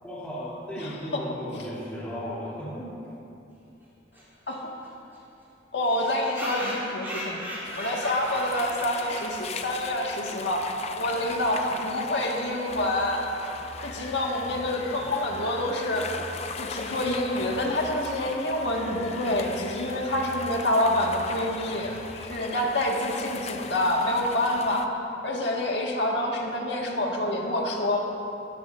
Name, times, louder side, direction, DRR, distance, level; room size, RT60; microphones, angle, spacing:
voice 1, 0.0-2.9, equal, 10° left, -9 dB, 3.3 m, -35 dB
voice 2, 0.8-1.2 4.5-4.6 5.7-7.4 7.8-10.7 11.0-13.2 13.8-16.1 16.6-21.9 22.3-24.9 25.2-28.0, left 1 dB, 65° left, -1 dB, 1.9 m, -27 dB
sound 1, 4.1-4.2 4.5-4.6 4.8-4.9 5.1-5.2 5.8-10.1, equal, 10° right, 3.6 m, -37 dB
sound 2, 7.6-24.9, left 5 dB, 35° left, 0.6 m, -39 dB
sound 3, 12.7-22.3, left 2 dB, 85° left, 1.6 m, -44 dB
21.5 x 13.5 x 2.7 m, 2.7 s
head